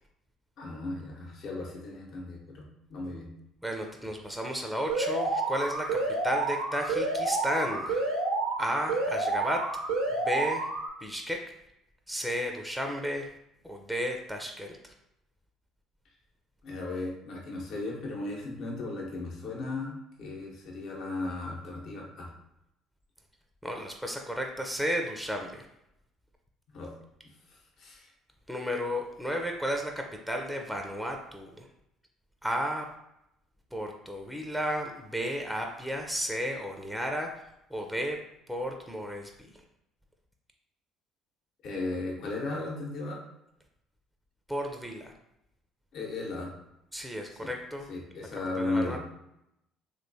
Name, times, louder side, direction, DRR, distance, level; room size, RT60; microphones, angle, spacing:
voice 1, 0.6-3.3 16.6-22.3 26.7-26.9 27.5-28.1 41.6-43.2 45.9-46.5 47.3-47.5 47.9-49.0, left 2 dB, 60° left, -1 dB, 0.9 m, -36 dB
voice 2, 3.6-8.0 8.6-9.7 10.1-10.7 11.0-11.5 12.1-13.3 13.6-14.9 23.6-25.7 28.5-31.7 32.4-32.9 33.7-37.4 37.7-38.2 38.5-39.5 44.5-45.1 46.9-47.9 48.6-49.0, equal, ahead, 2 dB, 0.5 m, -33 dB
Alarm, 4.9-10.9, right 3 dB, 85° right, 0.7 m, -29 dB
3.0 x 3.0 x 2.7 m, 0.82 s
hypercardioid pair, 60°, 0 cm